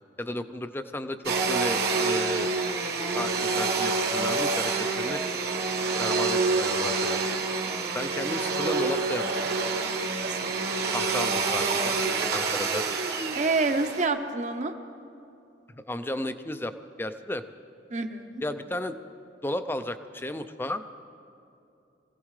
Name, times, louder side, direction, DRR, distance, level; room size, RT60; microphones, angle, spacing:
voice 1, 0.2-1.2 1.5-2.5 3.1-5.2 6.0-7.3 7.9-9.5 10.9-12.0 12.3-12.9 15.8-17.4 18.4-19.0 19.4-20.8, left 1 dB, 10° left, 10 dB, 0.5 m, -33 dB
Domestic sounds home sounds, 1.2-14.1, right 3 dB, 60° right, 1.3 m, -27 dB
voice 2, 13.3-14.7 17.9-18.4, right 3 dB, 40° right, 6 dB, 0.9 m, -27 dB
25.0 x 16.5 x 3.3 m, 2.7 s
head